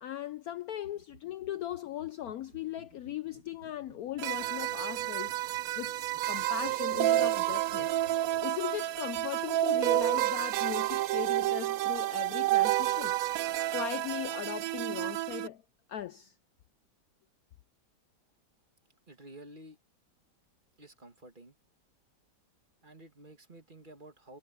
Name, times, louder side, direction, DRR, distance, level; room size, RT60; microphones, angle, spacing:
voice 1, 0.0-5.4 5.7-7.9 8.4-13.1 13.7-15.6 15.9-16.3, left 12 dB, 70° left, 0.9 m, -39 dB
sound 1, 0.8-8.4, right 3 dB, 90° right, 3.2 m, -58 dB
sound 2, 4.2-15.5, right 14 dB, 70° right, 0.8 m, -30 dB
voice 2, 19.1-19.8 20.8-21.6 22.8-24.4, right 1 dB, 30° right, 1.9 m, -51 dB
omnidirectional pair, 1.9 m